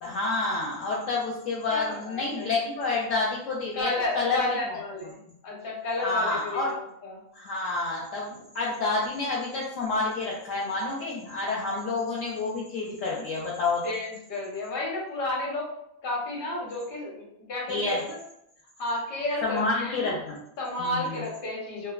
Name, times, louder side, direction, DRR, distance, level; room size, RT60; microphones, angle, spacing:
voice 1, 0.0-4.8 6.0-6.8 7.3-13.9 17.7-18.0 19.4-20.4 20.8-21.2, left 3 dB, 70° left, -4 dB, 0.8 m, -29 dB
voice 2, 1.7-2.5 3.7-5.1 5.4-7.2 13.8-15.7 16.0-18.2 18.8-20.1 20.6-21.9, left 2 dB, 45° left, -3 dB, 0.9 m, -32 dB
2.9 x 2.1 x 2.3 m, 0.76 s
omnidirectional pair, 1.6 m